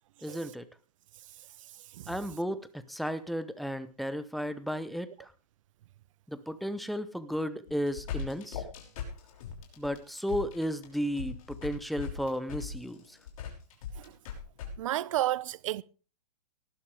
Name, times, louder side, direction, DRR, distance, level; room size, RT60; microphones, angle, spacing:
voice 1, 0.2-0.7 2.1-5.3 6.3-8.6 9.8-13.2, equal, ahead, 0.8 m, -34 dB
sound 1, 7.7-14.7, left 6 dB, 55° left, 5.9 m, -39 dB
voice 2, 14.8-15.8, right 14 dB, 50° right, 0.8 m, -31 dB
19.0 x 12.5 x 3.5 m
hypercardioid pair, 145°, 21 cm